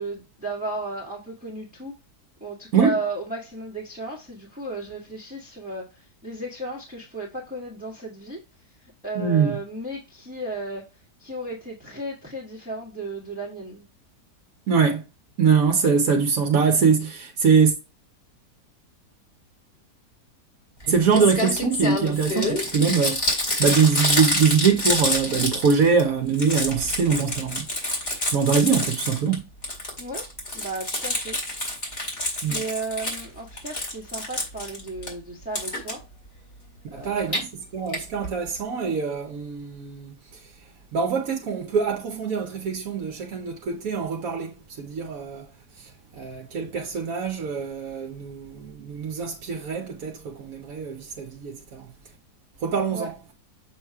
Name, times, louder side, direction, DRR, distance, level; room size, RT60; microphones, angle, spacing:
voice 1, 0.0-1.9 2.4-8.4 9.0-10.8 11.2-13.8 30.0-30.2 30.5-31.4 32.5-36.0 37.0-37.4 52.9-53.1, right 2 dB, 5° right, 1.6 m, -34 dB
voice 2, 9.2-9.5 14.7-15.0 15.4-17.7 20.9-27.7 28.3-29.5 32.4-32.6 36.9-37.5 37.7-40.1 40.9-45.4 46.2-51.9 52.6-53.1, right 6 dB, 60° right, 1.2 m, -23 dB
Crumpling crinkling, 20.8-20.9 21.1-26.0 26.3-29.3 29.6-33.2 33.6-35.1 35.5-35.9 37.0-37.4 37.9-38.0 38.2-38.3 38.5-38.6, left 1 dB, 35° left, 2.5 m, -27 dB
7.2 x 3.0 x 4.7 m
omnidirectional pair, 1.8 m